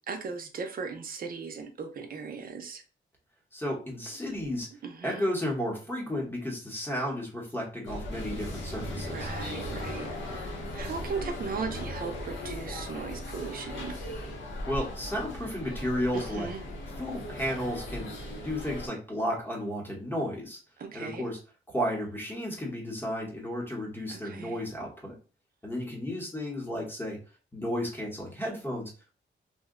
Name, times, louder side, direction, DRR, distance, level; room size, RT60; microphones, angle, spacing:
voice 1, 0.1-2.8 4.8-5.2 9.0-14.0 16.1-16.6 20.8-21.2 24.1-24.6, right 5 dB, 45° right, 5 dB, 0.6 m, -38 dB
voice 2, 3.5-4.7 5.0-9.3 14.7-16.5 17.0-18.1 18.4-20.6 20.9-21.4 21.7-25.1 25.6-27.2 27.5-29.1, equal, 10° left, -1 dB, 0.9 m, -33 dB
sound 1, 7.9-18.9, left 1 dB, 75° left, 0.9 m, -37 dB
2.7 x 2.1 x 3.6 m, 0.36 s
wide cardioid pair, 175°, 20 cm